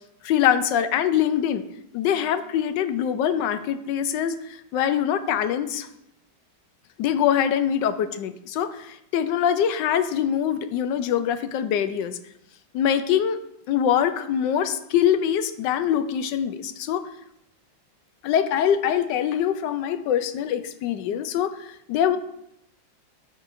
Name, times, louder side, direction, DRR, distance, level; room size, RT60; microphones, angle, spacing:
voice 1, 0.2-1.6 1.9-5.9 7.0-12.2 12.7-13.4 13.7-17.1 18.2-22.2, left 9 dB, 75° left, 10 dB, 1.2 m, -24 dB
13.0 x 4.5 x 2.6 m, 0.80 s
omnidirectional pair, 2.0 m